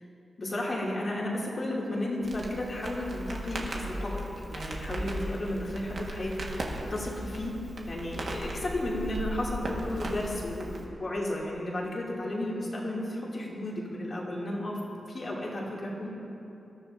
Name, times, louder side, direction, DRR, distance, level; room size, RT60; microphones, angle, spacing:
voice 1, 0.4-4.2 4.5-7.6 7.9-14.8 15.1-16.1, left 1 dB, 45° left, -5 dB, 2.9 m, -33 dB
Crackle, 2.2-10.9, right 1 dB, 65° right, 1.8 m, -37 dB
21.0 x 13.5 x 2.8 m, 2.9 s
wide cardioid pair, 115°, 0 cm